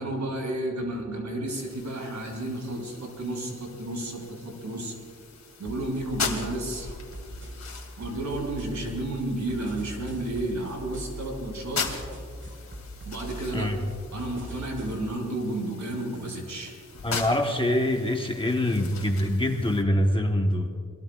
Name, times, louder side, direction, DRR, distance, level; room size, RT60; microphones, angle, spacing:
voice 1, 0.0-5.0 5.6-6.9 8.0-11.8 13.0-13.7 14.1-16.7, right 1 dB, 65° right, 0 dB, 5.5 m, -32 dB
sound 1, 1.5-19.8, left 5 dB, 55° left, 2.6 m, -40 dB
sound 2, 5.6-15.1, right 1 dB, 40° right, 4.5 m, -41 dB
voice 2, 17.0-20.7, left 1 dB, 15° left, 2 dB, 1.2 m, -24 dB
27.5 x 22.0 x 2.4 m, 2.3 s
wide cardioid pair, 115°, 31 cm